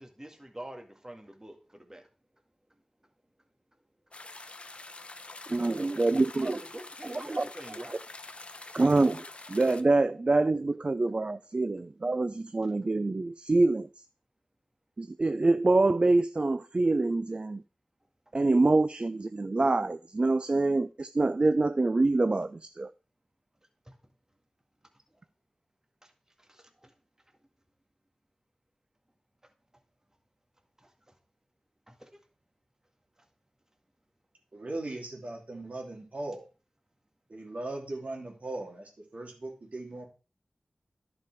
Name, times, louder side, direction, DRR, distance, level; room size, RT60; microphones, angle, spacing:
voice 1, 0.0-2.0 6.4-8.0 23.9-24.0 26.0-26.1 26.4-26.9 30.8-31.1 31.9-32.2, right 1 dB, 20° right, 1.8 m, -47 dB
sound 1, 4.1-9.8, left 2 dB, 50° left, 0.8 m, -46 dB
voice 2, 5.5-6.6 7.0-7.4 8.7-13.9 15.0-17.6 18.3-22.9, right 2 dB, 45° right, 0.4 m, -26 dB
voice 3, 34.5-36.5 37.3-40.1, right 2 dB, 65° right, 2.8 m, -38 dB
11.0 x 5.2 x 4.6 m
cardioid pair, 45°, 3 cm